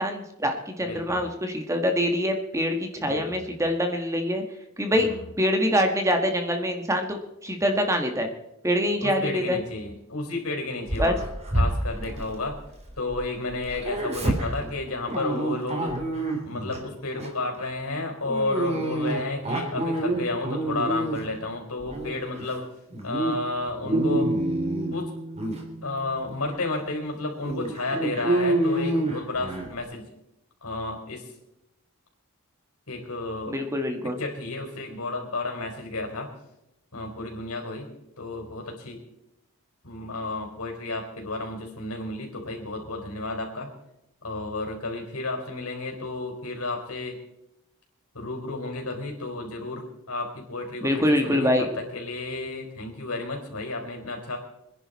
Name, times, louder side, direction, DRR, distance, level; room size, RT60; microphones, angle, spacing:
voice 1, 0.0-4.4 4.8-5.1 5.4-8.3 8.6-9.6 11.0-11.1 33.5-34.2 50.8-51.7, equal, 15° right, 4 dB, 1.5 m, -25 dB
voice 2, 0.8-1.3 3.0-3.5 4.9-5.3 9.0-11.2 11.5-12.6 13.0-15.9 16.4-22.6 23.0-24.3 24.9-25.2 25.8-30.1 30.6-31.3 32.9-33.6 34.0-36.3 36.9-37.9 38.2-39.0 39.8-43.7 44.2-47.2 48.1-54.4, left 2 dB, 80° left, 1 dB, 4.3 m, -32 dB
Dog, 10.9-13.2 13.5-16.8 17.2-17.5 18.3-21.4 21.8-22.5 22.9-23.3 23.7-24.9 25.4-25.6 26.2-26.3 26.7-26.8 27.4-29.7, right 1 dB, 30° right, 3.1 m, -28 dB
sound 1, 23.9-27.1, equal, 45° right, 2.0 m, -30 dB
25.5 x 10.5 x 4.2 m, 0.86 s
head